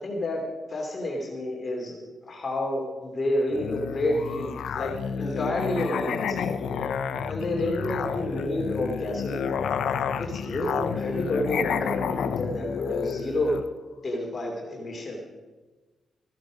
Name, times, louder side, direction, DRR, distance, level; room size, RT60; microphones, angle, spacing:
voice 1, 0.0-0.4 0.7-2.0 2.2-4.9 5.2-6.6 7.3-9.5 10.2-13.6 14.0-15.2, left 1 dB, 40° left, 0 dB, 2.9 m, -29 dB
Musical instrument, 3.5-13.7, left 7 dB, 80° left, 0.7 m, -30 dB
14.5 x 12.0 x 5.1 m, 1.3 s
cardioid pair, 80°, 0 cm